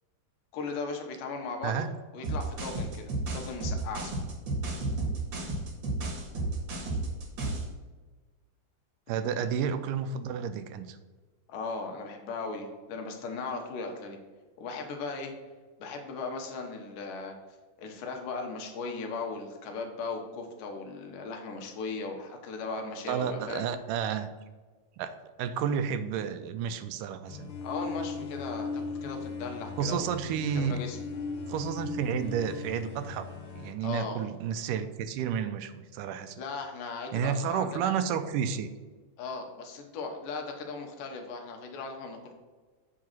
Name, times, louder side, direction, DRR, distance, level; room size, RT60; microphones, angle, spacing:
voice 1, 0.5-3.1 3.3-4.1 11.5-14.2 14.6-15.3 15.8-17.3 17.8-23.7 27.6-30.1 30.6-31.0 33.8-34.2 36.4-37.9 39.2-42.3, left 4 dB, 90° left, 3 dB, 2.6 m, -37 dB
sound 1, 2.2-7.7, right 2 dB, 50° right, 1.5 m, -32 dB
voice 2, 9.1-11.0 23.1-24.3 25.0-25.1 25.4-27.5 29.8-30.8 31.5-33.3 33.6-36.4 37.1-38.7, right 7 dB, 80° right, 10 dB, 2.1 m, -31 dB
sound 2, 27.2-33.7, left 4 dB, 65° left, 1.3 m, -38 dB
7.5 x 3.8 x 5.9 m, 1.3 s
omnidirectional pair, 3.7 m